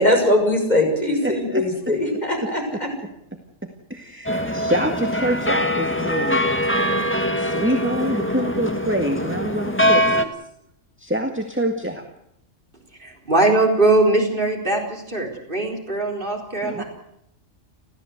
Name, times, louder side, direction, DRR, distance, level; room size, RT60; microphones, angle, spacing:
voice 1, 0.0-2.9, left 1 dB, 35° left, 2 dB, 7.0 m, -20 dB
voice 2, 1.2-1.6 3.6-6.5 7.4-10.3 11.0-12.0 16.6-16.8, right 1 dB, 10° right, 4 dB, 1.9 m, -26 dB
sound 1, 4.3-10.3, equal, 10° left, 1.6 m, -22 dB
voice 3, 13.0-16.8, right 2 dB, 40° right, 1 dB, 4.4 m, -21 dB
30.0 x 14.5 x 8.1 m, 0.77 s
omnidirectional pair, 1.3 m